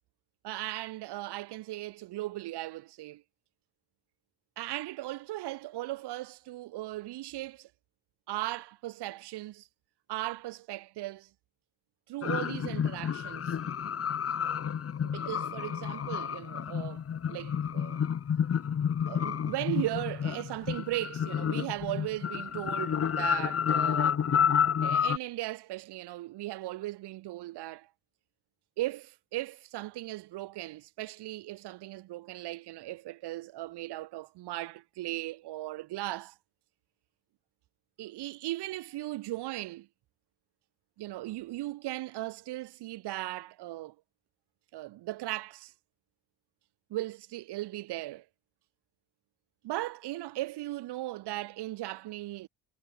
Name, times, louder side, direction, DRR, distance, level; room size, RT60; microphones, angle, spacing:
voice 1, 0.4-3.2 4.6-7.7 8.3-9.7 10.1-11.3 12.1-13.6 15.0-17.0 17.3-18.0 19.1-24.2 24.8-27.9 28.8-36.3 38.0-39.9 41.0-43.9 44.7-45.7 46.9-48.2 49.6-52.5, right 16 dB, 75° right, 3.0 m, -37 dB
sound 1, 12.2-25.2, left 8 dB, 35° left, 1.2 m, -30 dB
supercardioid pair, 80°, 41 cm